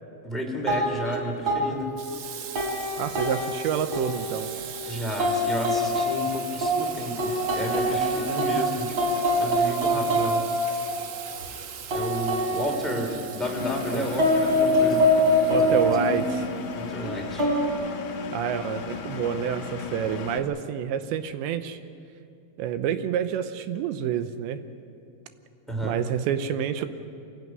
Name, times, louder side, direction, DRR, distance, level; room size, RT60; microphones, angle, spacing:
voice 1, 0.2-2.0 4.9-10.5 11.9-15.2 15.5-15.8 16.7-17.5 25.7-26.0, equal, ahead, -1 dB, 2.2 m, -32 dB
sound 1, 0.7-1.2 1.5-2.1 2.5-4.7 5.2-6.8 7.2-8.6 9.0-11.5 11.9-13.6 14.2-16.4 17.0-17.7, equal, 30° right, 3.8 m, -24 dB
Water tap faucet / Sink (filling or washing), 2.0-16.7, right 8 dB, 65° right, 3.3 m, -40 dB
voice 2, 3.0-4.5 13.9-14.0 15.5-16.5 18.3-21.8 22.6-24.6 25.8-26.9, right 9 dB, 80° right, 10 dB, 3.0 m, -28 dB
Engine, 13.4-20.4, left 7 dB, 60° left, 2.1 m, -36 dB
25.0 x 16.5 x 9.5 m, 2.4 s
omnidirectional pair, 5.3 m